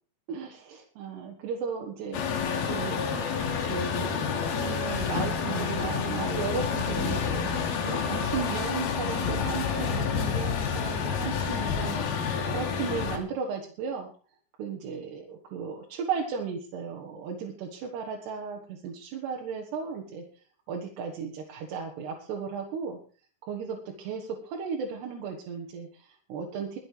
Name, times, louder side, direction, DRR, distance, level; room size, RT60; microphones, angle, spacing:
voice 1, 0.3-2.2 2.7-3.0 3.5-14.1 14.6-20.2 20.7-23.0 23.4-26.8, right 6 dB, 75° right, 1 dB, 3.6 m, -35 dB
Truck, 2.1-13.2, left 6 dB, 60° left, 3.8 m, -29 dB
22.5 x 7.8 x 4.8 m, 0.38 s
omnidirectional pair, 4.9 m